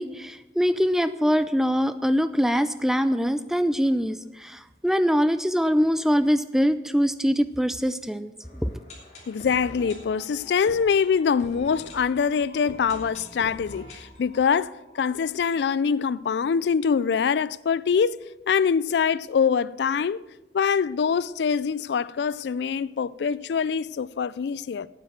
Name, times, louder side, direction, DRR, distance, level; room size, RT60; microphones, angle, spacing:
voice 1, 0.0-8.3 8.6-8.8, equal, 5° right, 0.4 m, -23 dB
sound 1, 8.4-16.2 16.4-16.5 16.7-16.8 17.4-17.5, equal, 40° left, 3.0 m, -45 dB
voice 2, 9.3-14.7 15.0-18.2 18.5-20.2 20.5-24.9, left 6 dB, 70° left, 0.3 m, -24 dB
9.1 x 9.0 x 7.4 m
head